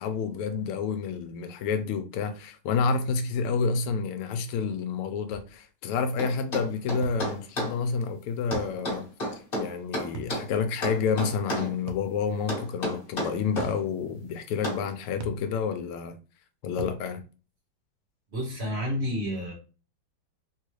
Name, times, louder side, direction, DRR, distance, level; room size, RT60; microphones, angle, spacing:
voice 1, 0.0-9.1 9.3-16.2 16.6-17.2, left 5 dB, 80° left, 1.4 m, -29 dB
sound 1, 5.3-5.5 7.0-7.3 8.5-8.8 10.1-10.4 11.9-12.1 13.6-13.8 15.2-15.5 16.8-17.0, right 5 dB, 75° right, 1.0 m, -39 dB
sound 2, 6.2-7.8 8.5-10.5 10.8-11.7 12.5-13.7 14.6-14.9, equal, 30° left, 1.1 m, -31 dB
voice 2, 18.3-19.5, equal, 50° right, 0.8 m, -30 dB
3.9 x 2.4 x 3.0 m
omnidirectional pair, 2.4 m